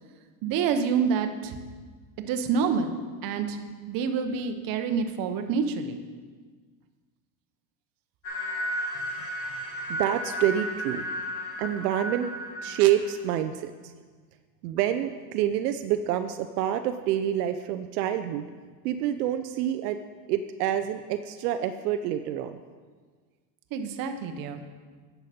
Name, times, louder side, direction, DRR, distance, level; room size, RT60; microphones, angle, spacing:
voice 1, 0.4-1.5 2.3-2.9 3.2-3.6 3.9-6.0 12.8-12.9 23.7-24.6, right 6 dB, 45° right, 7 dB, 1.0 m, -27 dB
sound 1, 8.2-13.3, equal, 90° left, 2.8 m, -34 dB
voice 2, 9.9-11.1 11.6-12.3 12.6-13.9 14.6-18.5 18.8-20.0 20.3-22.6, right 11 dB, 80° right, 8 dB, 0.6 m, -27 dB
10.5 x 6.9 x 4.3 m, 1.5 s
supercardioid pair, 125°, 47 cm